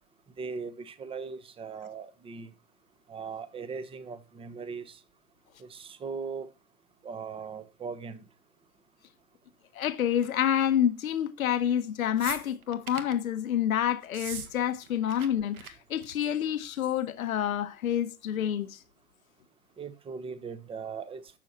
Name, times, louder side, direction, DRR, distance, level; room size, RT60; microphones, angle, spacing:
voice 1, 0.4-2.5 3.1-5.0 5.6-6.5 7.0-8.2 19.8-21.2, right 5 dB, 10° right, 1.0 m, -39 dB
voice 2, 9.7-18.8, left 10 dB, 65° left, 1.1 m, -28 dB
sound 1, 12.2-13.2 14.0-14.5 14.8-15.3 15.5-15.7 16.0-16.3 17.3-17.4, right 7 dB, 70° right, 1.8 m, -40 dB
12.0 x 7.5 x 4.2 m
hypercardioid pair, 115°, 44 cm